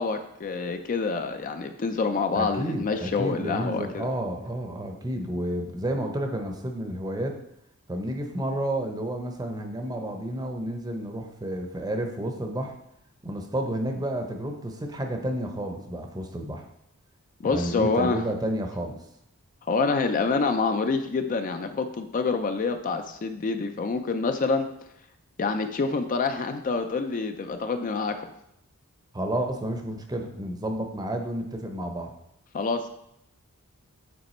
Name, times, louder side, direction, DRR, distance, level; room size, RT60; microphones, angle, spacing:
voice 1, 0.0-4.1 17.4-18.2 19.7-24.7 25.4-28.2 32.5-32.9, left 4 dB, 40° left, 7 dB, 0.4 m, -27 dB
voice 2, 2.4-7.4 7.9-12.7 13.2-16.7 17.4-19.0 29.1-32.1, right 1 dB, 20° right, 4 dB, 0.7 m, -31 dB
8.0 x 3.3 x 4.3 m, 0.79 s
head